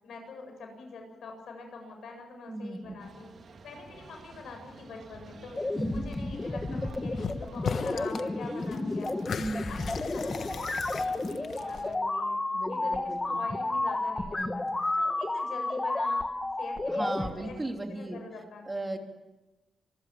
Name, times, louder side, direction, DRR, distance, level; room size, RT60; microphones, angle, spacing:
voice 1, 0.0-3.3 3.6-5.6 5.9-10.7 11.0-12.4 12.7-14.6 15.0-16.2 16.6-17.6 17.9-18.9, left 3 dB, 80° left, 4 dB, 8.0 m, -44 dB
voice 2, 2.5-3.0 5.7-6.4 9.4-9.9 12.5-13.4 14.3-14.6 16.9-18.2 18.6-19.0, right 2 dB, 20° right, 4 dB, 3.2 m, -36 dB
sound 1, 3.0-11.9, right 4 dB, 60° right, 2.8 m, -51 dB
sound 2, 5.5-17.3, left 2 dB, 20° left, 2.2 m, -31 dB
sound 3, 7.2-7.4 7.6-8.3 8.6-12.0, left 6 dB, 65° left, 1.3 m, -37 dB
26.5 x 21.0 x 7.7 m, 1.1 s
cardioid pair, 95°, 0 cm